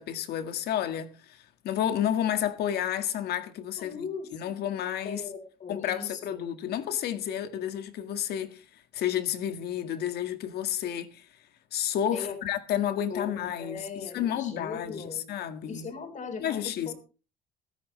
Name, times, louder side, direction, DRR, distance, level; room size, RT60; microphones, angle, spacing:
voice 1, 0.0-4.0 4.3-5.2 5.7-11.3 11.7-15.9 16.4-16.9, left 10 dB, 70° left, 1.8 m, -31 dB
voice 2, 3.8-4.6 5.0-6.5 12.1-12.4 13.1-15.2 15.7-16.9, left 5 dB, 45° left, 4.1 m, -39 dB
16.5 x 13.5 x 3.2 m
cardioid pair, 110°, 17 cm